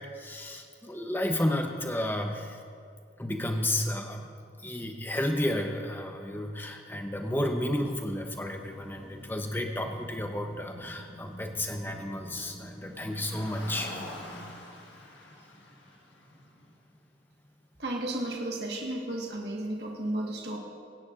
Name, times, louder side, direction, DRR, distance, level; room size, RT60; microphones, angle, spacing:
voice 1, 0.0-2.6 3.2-4.3 4.6-14.1, left 1 dB, 10° left, 3 dB, 0.8 m, -32 dB
sound 1, 7.8-14.6, right 1 dB, 10° right, 1.9 m, -47 dB
Car, 12.7-17.1, left 1 dB, 70° left, 1.5 m, -46 dB
voice 2, 17.8-20.6, right 1 dB, 60° right, 0 dB, 1.5 m, -33 dB
23.0 x 9.8 x 2.5 m, 2.3 s
head